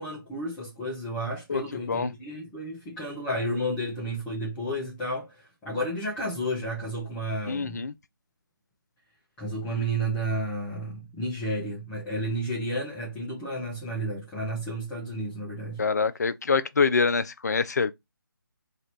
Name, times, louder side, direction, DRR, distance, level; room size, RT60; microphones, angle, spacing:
voice 1, 0.0-7.8 9.4-15.8, right 1 dB, 5° left, 0.8 m, -32 dB
voice 2, 7.5-7.9 15.8-17.9, left 5 dB, 50° left, 0.4 m, -25 dB
2.9 x 2.8 x 3.0 m
figure-of-eight pair, 155°, 12 cm